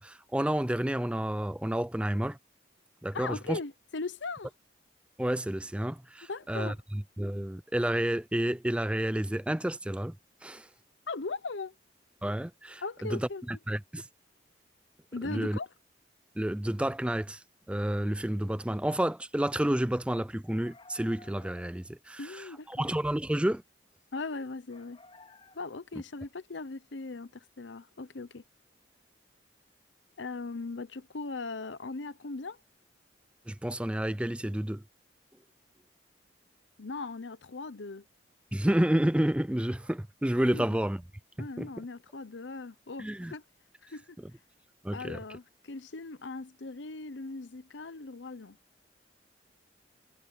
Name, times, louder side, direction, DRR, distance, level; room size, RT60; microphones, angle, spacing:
voice 1, 0.0-2.4 3.0-3.6 5.2-10.2 10.4-10.7 12.2-14.1 15.2-15.6 16.4-23.6 33.5-34.8 38.5-41.0 41.4-41.7 43.0-43.3 44.8-45.2, right 1 dB, 5° right, 0.4 m, -30 dB
voice 2, 3.1-4.5 6.3-6.8 11.1-11.7 12.8-13.4 15.1-15.7 22.2-22.9 24.1-25.0 25.5-28.4 30.2-32.6 36.8-38.0 40.5-40.6 41.4-43.4 43.8-44.0 44.9-48.6, left 3 dB, 85° left, 0.9 m, -39 dB
sound 1, 20.6-21.9 24.7-25.9, left 3 dB, 30° left, 4.5 m, -55 dB
head